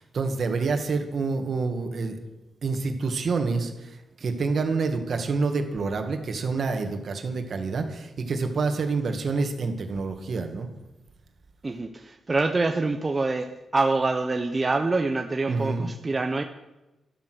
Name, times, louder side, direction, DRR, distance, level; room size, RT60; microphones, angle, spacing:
voice 1, 0.0-2.2 2.6-10.7 15.5-15.9, right 4 dB, 55° right, 5 dB, 2.1 m, -27 dB
voice 2, 11.6-16.4, right 3 dB, 30° right, 5 dB, 0.9 m, -25 dB
13.0 x 12.0 x 6.4 m, 0.99 s
cardioid pair, 100°, 0 cm